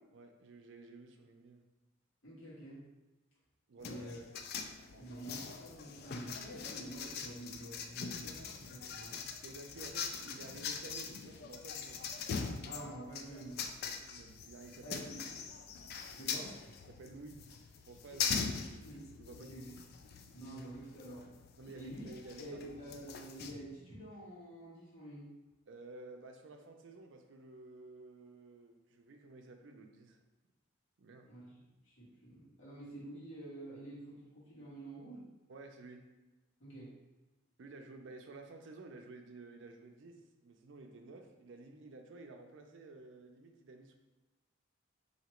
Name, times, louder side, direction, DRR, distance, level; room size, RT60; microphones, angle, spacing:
voice 1, 0.1-1.7 3.7-4.1 4.9-5.1 9.4-12.0 13.8-15.2 16.9-17.4 17.9-18.9 19.2-19.5 21.6-22.5 25.7-30.2 31.0-31.3 35.5-36.1 37.6-43.9, right 2 dB, 65° right, 4 dB, 0.5 m, -52 dB
voice 2, 2.2-2.8 3.8-4.2 5.0-9.2 12.6-13.9 14.8-15.2 16.1-16.5 18.8-19.0 19.4-19.7 20.3-21.2 21.7-22.0 22.4-25.3 31.2-31.5 31.8-35.2 36.6-36.9, right 1 dB, 80° left, -8 dB, 1.5 m, -48 dB
sound 1, 3.8-23.5, left 6 dB, 55° left, 0.3 m, -42 dB
2.9 x 2.8 x 4.3 m, 1.1 s
head